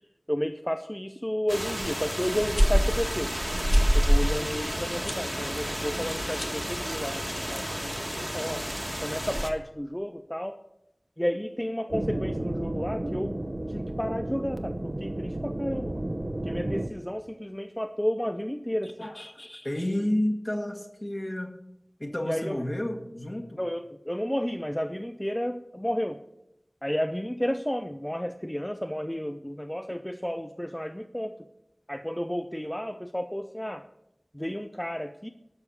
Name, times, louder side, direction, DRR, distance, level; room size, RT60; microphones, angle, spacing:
voice 1, 0.3-3.3 3.9-8.6 9.0-10.6 11.2-13.4 13.7-16.1 16.4-19.0 22.3-22.6 23.6-26.2 26.8-31.5 31.9-33.8 34.3-35.3, equal, 15° left, 8 dB, 0.6 m, -32 dB
sound 1, 1.5-9.5, equal, 10° right, 1.4 m, -27 dB
sound 2, 2.5-2.7 3.7-3.9 5.0-5.2 6.3-6.7, left 2 dB, 90° left, 1.2 m, -39 dB
sound 3, 11.9-16.9, right 1 dB, 60° right, 0.9 m, -32 dB
voice 2, 18.8-21.5 22.0-23.6, left 1 dB, 40° left, 4 dB, 1.8 m, -31 dB
12.0 x 6.6 x 7.1 m, 0.85 s
wide cardioid pair, 40°, 0 cm